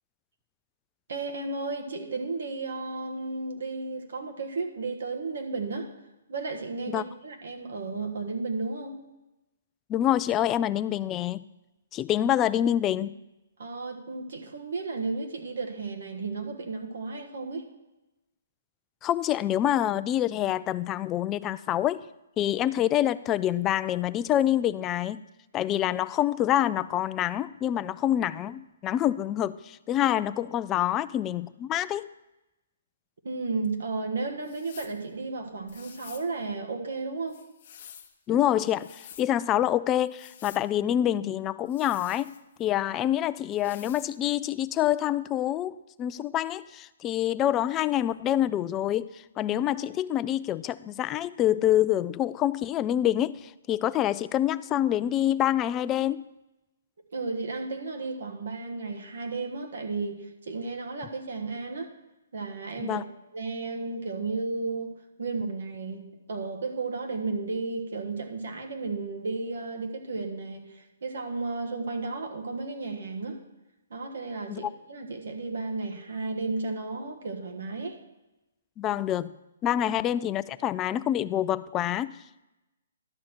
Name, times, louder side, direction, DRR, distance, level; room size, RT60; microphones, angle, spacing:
voice 1, 1.1-5.9 6.3-9.0 13.6-17.7 33.2-37.4 57.1-61.9 62.3-63.1 63.3-73.4 73.9-78.0 79.7-79.8, right 3 dB, 70° right, 4 dB, 1.4 m, -33 dB
voice 2, 9.9-11.4 11.9-13.1 19.0-22.0 22.4-25.2 25.5-32.1 38.3-42.3 42.6-49.1 49.4-56.2 62.8-63.0 74.5-74.7 78.8-79.4 79.6-82.1, left 12 dB, 20° left, 15 dB, 0.3 m, -26 dB
sound 1, 34.4-35.0 35.7-36.3 37.3-38.1 38.7-39.3 40.1-40.7 41.7-42.7 43.5-44.1, left 9 dB, 50° left, 0.8 m, -49 dB
11.5 x 6.3 x 4.5 m, 0.98 s
hypercardioid pair, 135°, 0 cm